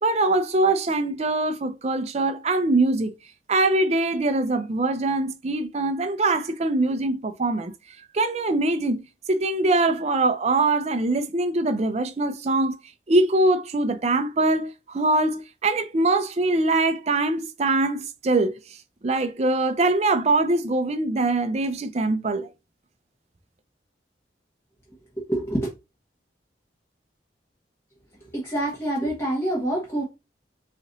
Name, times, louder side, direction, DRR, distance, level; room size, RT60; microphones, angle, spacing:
voice 1, 0.0-3.1 3.5-7.7 8.1-9.0 9.3-12.8 13.1-18.6 19.0-22.5, right 2 dB, 40° right, 0.5 m, -23 dB
voice 2, 25.3-25.7 28.3-30.0, right 1 dB, 15° left, 1.2 m, -26 dB
4.1 x 3.0 x 3.9 m
head